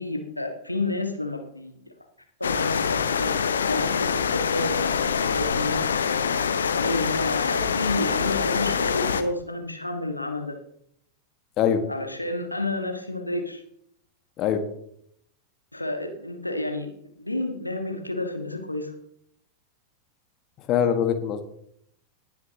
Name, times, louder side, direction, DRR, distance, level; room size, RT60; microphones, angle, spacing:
voice 1, 0.0-1.8 2.4-5.9 6.8-10.6 11.9-13.6 15.7-16.9 17.2-18.9, left 2 dB, 85° left, 4 dB, 1.7 m, -30 dB
sound 1, 2.4-9.2, left 6 dB, 70° left, 1.0 m, -25 dB
voice 2, 20.7-21.4, left 8 dB, 35° left, 7 dB, 1.5 m, -22 dB
19.0 x 9.4 x 2.9 m, 0.68 s
figure-of-eight pair, 90°, 0 cm